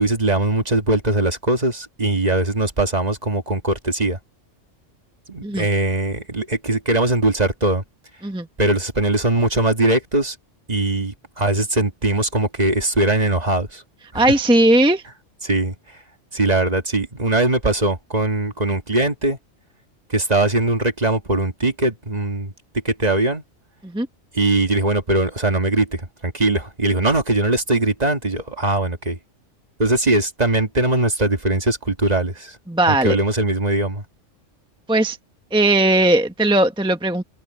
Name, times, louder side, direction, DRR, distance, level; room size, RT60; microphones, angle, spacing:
voice 1, 0.0-4.2 5.3-7.8 8.6-10.4 10.7-13.8 14.1-14.3 15.4-15.8 16.3-19.4 20.1-22.5 22.8-23.4 24.3-29.2 29.8-32.6 32.9-34.0, right 2 dB, 35° right, 1.9 m, -20 dB
voice 2, 14.1-15.0 23.8-24.1 32.7-33.2 34.9-35.2 35.5-37.2, right 1 dB, 5° right, 1.1 m, -17 dB
open air
omnidirectional pair, 1.3 m